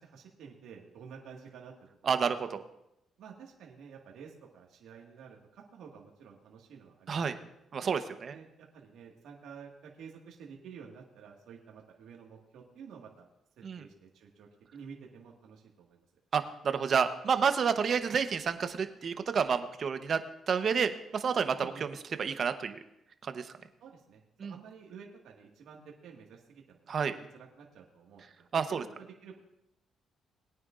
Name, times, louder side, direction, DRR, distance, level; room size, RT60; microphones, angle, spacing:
voice 1, 0.0-1.7 3.2-7.3 7.5-7.7 8.3-13.2 13.6-16.1 21.6-21.8 23.8-26.8 27.1-29.4, right 6 dB, 80° right, -1 dB, 1.8 m, -51 dB
voice 2, 2.0-2.6 7.1-7.4 7.7-8.4 13.6-13.8 16.3-20.2 20.5-22.8 23.2-23.5 24.4-24.5 26.9-27.1 28.5-28.8, right 6 dB, 50° right, 9 dB, 0.9 m, -30 dB
20.5 x 9.5 x 2.5 m, 0.83 s
cardioid pair, 90°, 0 cm